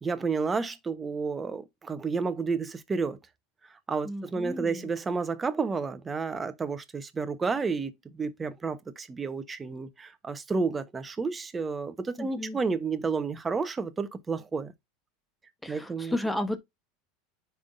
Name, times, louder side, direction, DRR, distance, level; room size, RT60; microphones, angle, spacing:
voice 1, 0.0-3.2 3.9-14.7 15.7-16.2, right 4 dB, 20° right, 1.1 m, -31 dB
voice 2, 4.0-4.9 12.2-12.6 15.6-16.6, left 1 dB, 5° left, 1.1 m, -33 dB
9.8 x 3.6 x 2.7 m
supercardioid pair, 110°, 0 cm